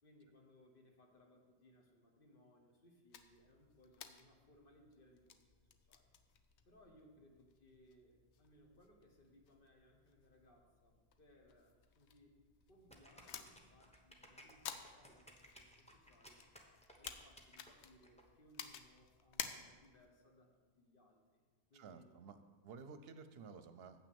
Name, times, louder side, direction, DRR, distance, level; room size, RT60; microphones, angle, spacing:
voice 1, 0.0-6.1 6.6-12.3 12.7-16.4 17.0-20.5 20.8-21.4 21.7-22.1, left 1 dB, 55° left, 1 dB, 1.5 m, -67 dB
sound 1, 3.1-20.1, left 8 dB, 80° left, 0.9 m, -54 dB
sound 2, 12.9-18.2, equal, 5° left, 0.9 m, -60 dB
voice 2, 21.7-24.0, right 5 dB, 70° right, 10 dB, 0.8 m, -54 dB
8.2 x 6.0 x 6.9 m, 1.4 s
omnidirectional pair, 1.1 m